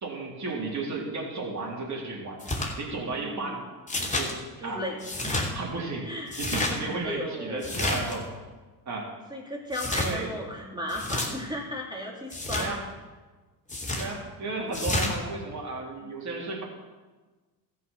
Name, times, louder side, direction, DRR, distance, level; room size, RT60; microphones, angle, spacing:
voice 1, 0.0-2.4 2.8-3.6 4.0-4.4 4.6-4.8 5.5-6.1 6.4-8.3 8.9-9.1 10.0-10.3 12.6-12.8 14.0-16.6, right 3 dB, 35° right, -2 dB, 3.7 m, -33 dB
sound 1, 2.4-2.7 3.9-4.3 5.0-5.5 6.3-6.7 7.6-8.2 9.7-10.1 10.9-11.3 12.3-12.7 13.7-14.1 14.7-15.1, left 2 dB, 15° left, 3.2 m, -29 dB
voice 2, 3.2-3.6 4.6-5.3 6.0-6.4 7.0-7.7 9.3-12.8 14.5-14.9, left 1 dB, 10° right, -2 dB, 2.7 m, -35 dB
14.0 x 5.9 x 7.5 m, 1.3 s
supercardioid pair, 75°, 47 cm